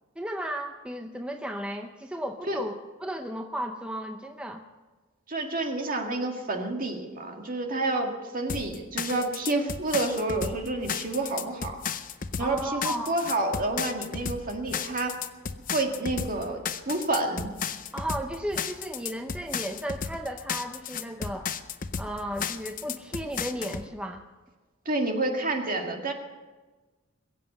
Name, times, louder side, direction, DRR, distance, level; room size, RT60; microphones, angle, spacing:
voice 1, 0.2-4.6 7.9-8.1 12.4-13.2 17.9-21.5 22.0-24.2, equal, 5° right, 4 dB, 0.6 m, -34 dB
voice 2, 5.3-11.7 12.4-15.2 15.7-17.5 24.9-26.1, right 2 dB, 45° right, 3 dB, 1.9 m, -29 dB
sound 1, 8.5-23.9, left 6 dB, 45° left, 0.7 m, -34 dB
22.0 x 7.6 x 7.9 m, 1.3 s
head